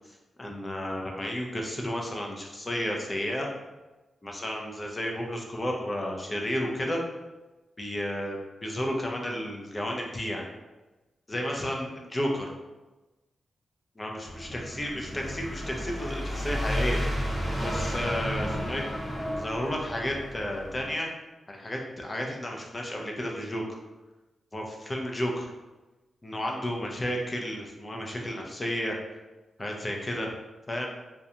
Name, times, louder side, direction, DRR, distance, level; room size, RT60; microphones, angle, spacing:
voice 1, 0.4-3.5 4.2-7.0 7.8-10.5 11.3-12.5 14.0-17.0 17.6-18.8 19.4-21.1 21.5-23.6 24.5-25.5 26.2-28.9 29.6-30.3 30.7-30.9, equal, 25° left, 0 dB, 0.5 m, -32 dB
sound 1, 14.2-20.9, equal, 5° left, 1.0 m, -32 dB
2.5 x 2.2 x 2.7 m, 1.1 s
cardioid pair, 95°, 0 cm